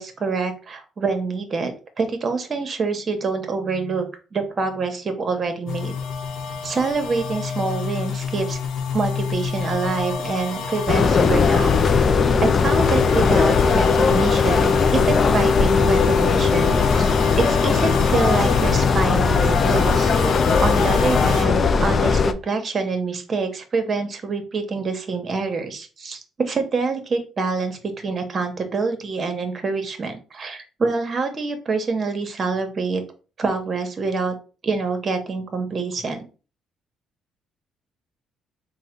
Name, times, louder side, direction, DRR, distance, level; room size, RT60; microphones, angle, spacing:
voice 1, 0.0-4.1 4.3-6.0 6.6-8.6 8.9-11.8 12.4-20.1 20.6-33.0 33.4-34.3 34.6-36.2, right 4 dB, 40° right, 7 dB, 1.0 m, -26 dB
sound 1, 5.7-21.5, left 6 dB, 70° left, 0.8 m, -28 dB
sound 2, 10.9-22.3, left 5 dB, 40° left, 0.4 m, -18 dB
3.9 x 2.1 x 4.4 m, 0.34 s
cardioid pair, 105°, 0 cm